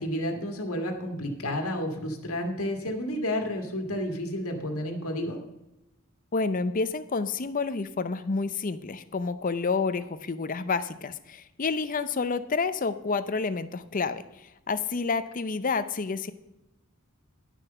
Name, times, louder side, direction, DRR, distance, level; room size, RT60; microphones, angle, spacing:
voice 1, 0.0-5.4, left 1 dB, 80° left, 3 dB, 1.8 m, -31 dB
voice 2, 6.3-16.3, left 4 dB, 40° left, 12 dB, 0.6 m, -29 dB
11.0 x 6.1 x 6.7 m, 0.94 s
head